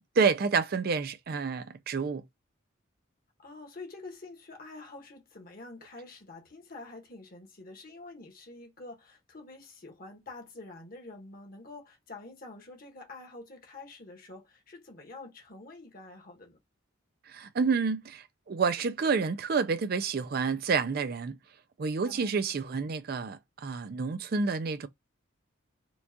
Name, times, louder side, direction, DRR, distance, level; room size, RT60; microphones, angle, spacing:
voice 1, 0.0-2.2 17.3-21.4 21.8-24.9, right 5 dB, 45° right, 0.4 m, -29 dB
voice 2, 3.4-16.6 22.0-22.8, left 2 dB, 45° left, 1.1 m, -47 dB
4.5 x 2.3 x 2.7 m
head